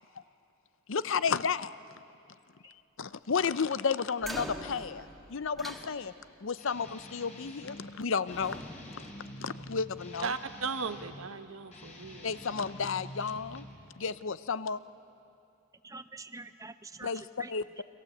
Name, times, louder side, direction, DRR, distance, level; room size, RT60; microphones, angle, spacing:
voice 1, 0.9-1.8 2.6-6.1 6.4-8.6 9.4-10.3 12.2-13.7 14.0-14.8 17.0-17.2 17.5-17.6, left 5 dB, 65° left, 15 dB, 0.6 m, -32 dB
sound 1, 4.2-6.5 7.6-8.0 8.3-10.0, right 1 dB, ahead, 1.9 m, -44 dB
Guitar, 6.6-7.9 8.3-11.2 11.7-13.8, left 1 dB, 35° left, 4.2 m, -47 dB
voice 2, 10.2-12.3, right 4 dB, 75° right, 10 dB, 1.1 m, -36 dB
voice 3, 15.8-17.8, right 3 dB, 15° right, 10 dB, 0.8 m, -46 dB
29.5 x 23.5 x 7.9 m, 2.7 s
head